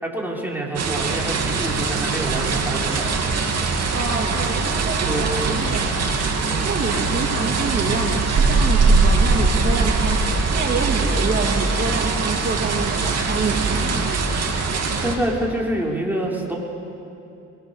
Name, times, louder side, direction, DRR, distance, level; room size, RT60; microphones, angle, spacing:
voice 1, 0.0-3.1 5.1-5.4 6.5-6.7 14.9-16.5, right 1 dB, 5° right, -3 dB, 5.1 m, -27 dB
sound 1, 0.8-15.2, right 4 dB, 55° right, 2.8 m, -21 dB
voice 2, 3.9-6.0 6.2-6.3 6.6-10.2 10.5-14.0, right 4 dB, 35° right, 0 dB, 2.3 m, -27 dB
22.5 x 22.0 x 7.2 m, 2.7 s
cardioid pair, 90°, 30 cm